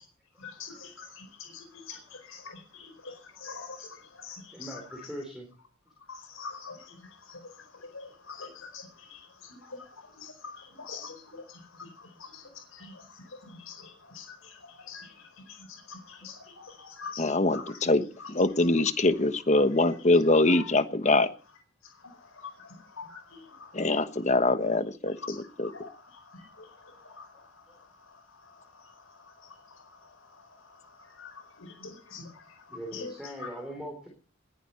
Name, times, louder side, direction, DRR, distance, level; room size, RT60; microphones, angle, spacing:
voice 1, 0.4-5.1 6.1-17.9 18.2-18.3 18.6-18.9 20.3-20.7 21.1-21.2 21.8-24.2 25.1-33.5, left 5 dB, 75° left, 6 dB, 4.6 m, -46 dB
voice 2, 4.5-5.5 12.4-12.5 15.0-15.1 16.2-16.4 26.7-27.0 27.3-27.8 32.7-34.1, equal, 5° right, 1 dB, 4.0 m, -42 dB
voice 3, 17.2-18.0 18.3-21.3 23.7-25.2 25.6-25.7, left 2 dB, 35° left, 11 dB, 1.2 m, -23 dB
20.5 x 11.0 x 5.7 m, 0.40 s
head